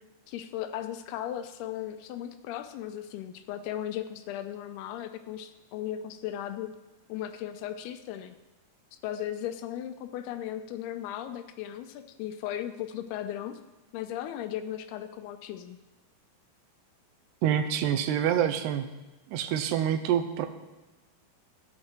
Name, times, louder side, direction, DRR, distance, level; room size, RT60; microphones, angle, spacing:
voice 1, 0.3-6.7 7.1-8.4 9.0-13.6 13.9-15.8, left 11 dB, 80° left, 9 dB, 2.6 m, -36 dB
voice 2, 17.4-18.9 19.3-20.5, right 9 dB, 90° right, 8 dB, 2.8 m, -26 dB
14.5 x 8.6 x 4.4 m, 1.1 s
omnidirectional pair, 4.7 m